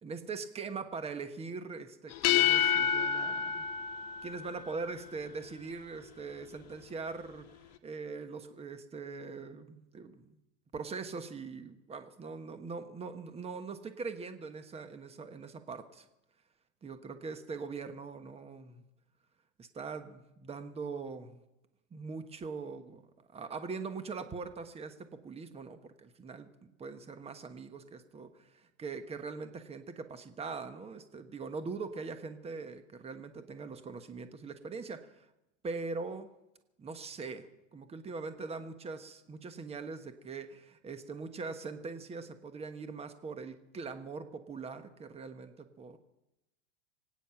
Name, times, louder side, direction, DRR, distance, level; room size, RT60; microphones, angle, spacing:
voice 1, 0.0-3.7 4.2-10.4 10.7-16.1 16.8-18.8 19.6-21.4 21.9-35.3 35.6-36.3 36.8-37.5 37.7-46.0, right 4 dB, 15° right, 9 dB, 1.3 m, -42 dB
sound 1, 2.1-4.9, left 9 dB, 45° left, 1.4 m, -29 dB
24.0 x 9.5 x 5.8 m, 0.94 s
hypercardioid pair, 110°, 35 cm